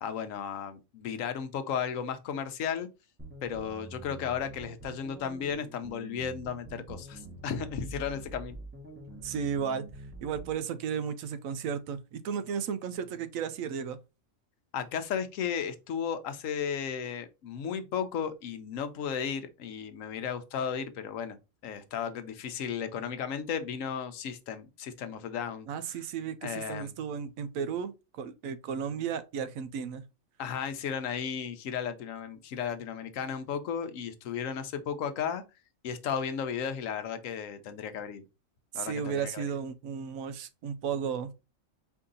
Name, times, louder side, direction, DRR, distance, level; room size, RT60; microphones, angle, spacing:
voice 1, 0.0-2.9 3.4-8.6 8.9-9.0 14.7-21.4 21.6-25.7 26.4-26.9 30.4-35.4 35.8-38.2 38.7-39.4, left 7 dB, 80° left, 1.1 m, -34 dB
sound 1, 3.2-10.6, right 2 dB, 10° right, 0.8 m, -46 dB
voice 2, 9.2-9.9 10.2-14.0 25.7-30.0 38.7-41.3, right 7 dB, 90° right, 1.0 m, -34 dB
4.6 x 2.7 x 3.7 m
omnidirectional pair, 1.4 m